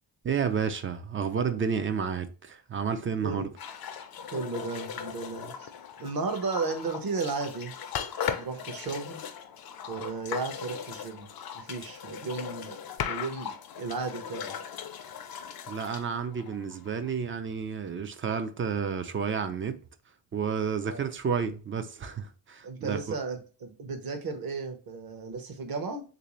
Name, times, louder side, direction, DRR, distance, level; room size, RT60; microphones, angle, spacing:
voice 1, 0.2-3.5 15.7-19.8 20.3-23.1, right 6 dB, 30° right, 0.3 m, -31 dB
sound 1, 3.6-17.1, left 8 dB, 50° left, 0.5 m, -38 dB
voice 2, 4.3-5.7 6.0-7.7 8.4-9.2 9.9-11.3 11.5-12.8 13.1-14.6 20.8-21.1 22.6-26.0, right 4 dB, 45° right, 0.9 m, -34 dB
3.2 x 2.7 x 3.0 m
cardioid pair, 80°, 49 cm